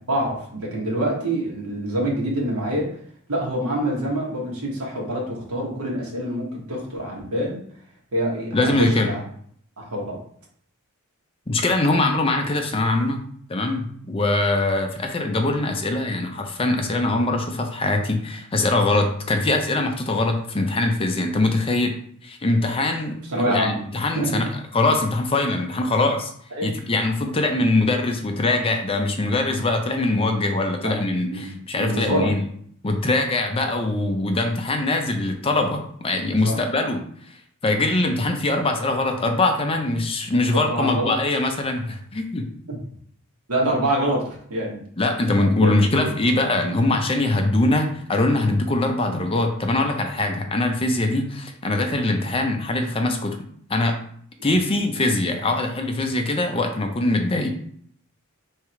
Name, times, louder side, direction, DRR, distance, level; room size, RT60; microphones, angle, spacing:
voice 1, 0.1-3.0 3.3-7.6 8.1-9.2 9.8-10.2 23.3-23.8 24.1-24.4 26.5-26.7 30.8-32.3 36.4-36.6 40.5-41.1 42.7-42.8 43.5-44.8 45.4-46.1 54.5-54.6, right 1 dB, 85° right, -2 dB, 1.5 m, -26 dB
voice 2, 8.5-9.1 11.5-13.2 13.5-22.0 22.2-26.3 26.6-32.4 32.8-37.0 37.6-42.5 45.0-53.4 53.7-54.0 54.4-57.5, left 2 dB, 25° left, 4 dB, 0.5 m, -22 dB
3.6 x 3.3 x 4.4 m, 0.62 s
head